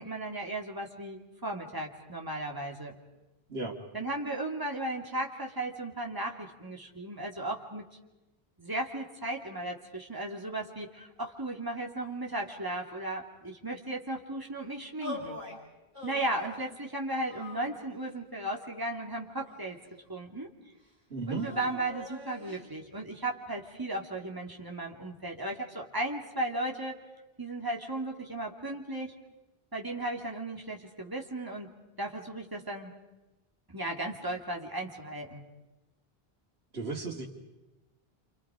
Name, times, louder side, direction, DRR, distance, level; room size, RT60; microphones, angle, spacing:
voice 1, 0.0-3.0 3.9-7.8 8.6-15.4 16.0-19.8 20.1-20.5 21.3-26.9 27.4-29.1 29.7-31.7 32.0-32.9 33.7-35.4, right 1 dB, 20° right, 1 dB, 2.8 m, -35 dB
voice 2, 3.5-3.8 21.1-21.5 36.7-37.3, right 3 dB, 85° right, -4 dB, 2.7 m, -35 dB
sound 1, 15.0-15.6 15.9-16.6 17.3-18.2 18.9-19.9 21.3-22.6, left 2 dB, 50° right, 6.6 m, -44 dB
29.5 x 28.0 x 5.1 m, 1.0 s
omnidirectional pair, 1.0 m